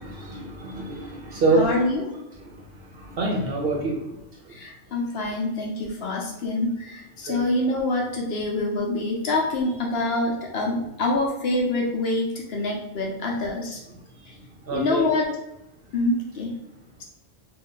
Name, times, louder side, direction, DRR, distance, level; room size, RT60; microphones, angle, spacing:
voice 1, 0.0-1.8 3.1-4.0 7.3-7.4 14.7-15.1, right 2 dB, 60° right, 0 dB, 0.7 m, -25 dB
voice 2, 1.5-2.1 4.5-13.8 14.3-14.4 14.7-15.4 15.9-16.6 17.0-17.1, left 2 dB, 65° left, -1 dB, 0.8 m, -26 dB
2.6 x 2.3 x 3.7 m, 0.89 s
omnidirectional pair, 1.3 m